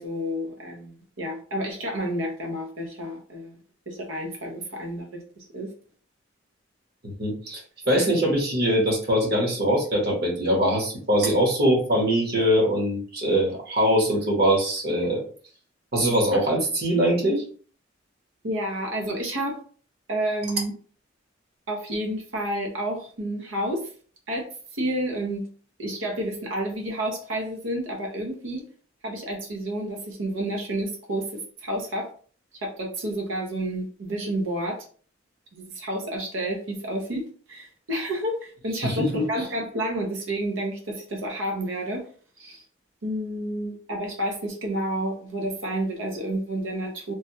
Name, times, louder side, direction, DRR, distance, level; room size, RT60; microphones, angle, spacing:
voice 1, 0.0-3.6 3.9-5.7 16.3-16.4 18.4-19.6 20.1-20.7 21.7-23.9 24.3-24.5 24.7-25.4 25.8-28.6 29.0-32.1 32.5-34.9 35.5-42.0 42.4-42.6 43.0-47.1, right 1 dB, 90° right, 0 dB, 0.7 m, -30 dB
voice 2, 7.0-15.2 15.9-17.4 38.8-39.2, equal, 55° right, 0 dB, 1.1 m, -22 dB
3.3 x 2.2 x 2.8 m, 0.44 s
head